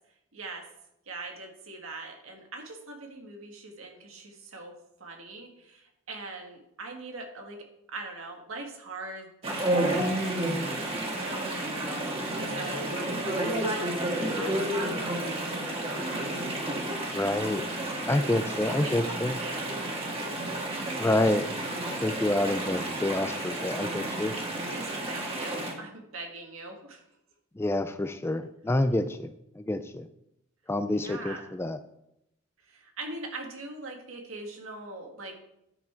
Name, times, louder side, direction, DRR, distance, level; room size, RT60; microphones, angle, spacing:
voice 1, 0.3-0.6 1.0-4.7 5.0-16.4 18.6-19.7 20.8-21.0 24.7-27.0 30.9-31.5 32.6-35.4, right 2 dB, 85° right, 2 dB, 1.8 m, -42 dB
Chatter / Stream, 9.4-25.7, right 1 dB, 25° right, 1.5 m, -31 dB
voice 2, 17.1-17.6 18.1-19.3 21.0-21.5 22.0-24.3 27.6-29.3 29.7-30.0 30.7-31.8, left 1 dB, 10° left, 11 dB, 0.3 m, -27 dB
10.0 x 5.9 x 4.4 m, 0.82 s
head